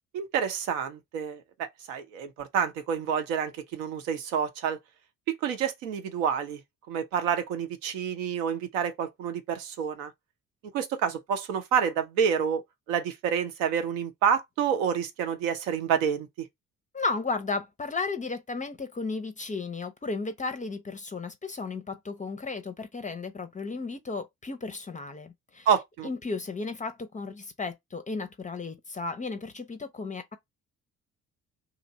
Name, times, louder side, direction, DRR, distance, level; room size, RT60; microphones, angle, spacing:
voice 1, 0.1-4.8 5.4-6.6 6.9-10.1 10.7-12.6 12.9-16.3 25.7-26.1, right 7 dB, 70° right, 0.7 m, -28 dB
voice 2, 16.9-25.7 26.0-30.4, left 3 dB, 20° left, 0.5 m, -34 dB
2.9 x 2.5 x 4.0 m
figure-of-eight pair, 45°, 41 cm